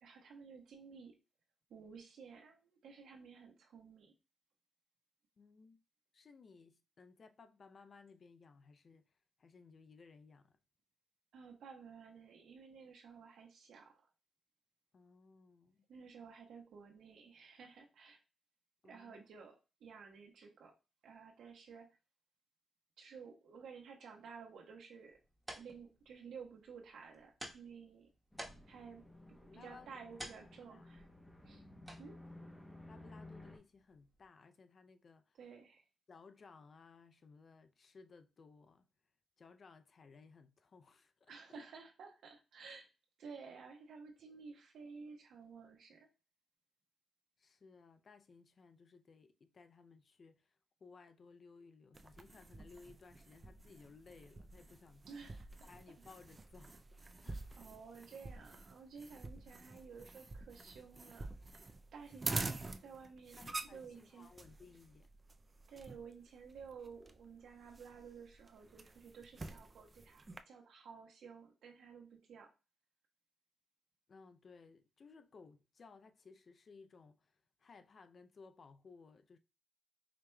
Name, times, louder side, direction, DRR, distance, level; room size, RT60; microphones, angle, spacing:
voice 1, 0.0-1.1 1.7-4.1 11.3-14.1 15.9-18.2 18.8-20.7 21.0-21.9 23.0-25.2 25.5-28.1 28.6-29.0 29.3-31.1 31.4-31.6 32.0-32.2 35.4-35.8 41.3-42.9 43.2-46.1 55.1-55.7 57.6-61.3 61.9-62.6 62.8-63.4 63.7-64.3 65.7-72.5, right 5 dB, 80° right, 1.1 m, -54 dB
voice 2, 5.4-5.8 6.1-10.6 14.9-15.9 18.8-19.3 29.5-30.0 30.7-31.0 32.9-35.4 36.1-38.9 39.4-41.7 47.4-55.4 55.7-57.5 62.4-63.0 63.4-65.1 74.1-79.4, left 4 dB, 50° left, 0.5 m, -60 dB
sound 1, 25.0-34.3, right 1 dB, 15° right, 1.2 m, -55 dB
sound 2, 28.3-33.6, left 1 dB, 10° left, 0.8 m, -55 dB
sound 3, 51.9-70.4, right 3 dB, 30° right, 0.4 m, -47 dB
4.9 x 3.1 x 2.2 m
cardioid pair, 75°, 0 cm